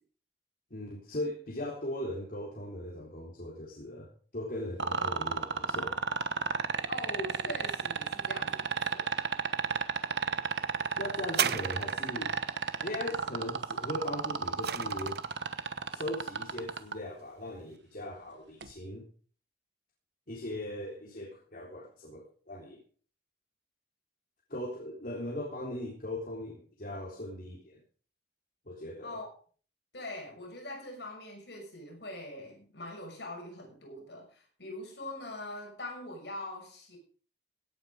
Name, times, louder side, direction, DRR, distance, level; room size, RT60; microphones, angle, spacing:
voice 1, 0.7-5.9 11.0-12.4 12.8-15.2 15.9-19.0 20.3-22.8 24.5-27.8 28.7-29.2, left 1 dB, 55° left, -4 dB, 3.7 m, -39 dB
sound 1, 4.8-16.9 18.6-18.7, right 5 dB, 85° right, 1.1 m, -31 dB
voice 2, 6.9-9.2 29.0-29.3 29.9-37.0, left 1 dB, 75° left, 1 dB, 6.3 m, -42 dB
sound 2, 11.3-12.3 14.0-15.4 16.2-16.3, right 8 dB, 60° right, 0.8 m, -34 dB
17.0 x 9.1 x 5.1 m, 0.43 s
head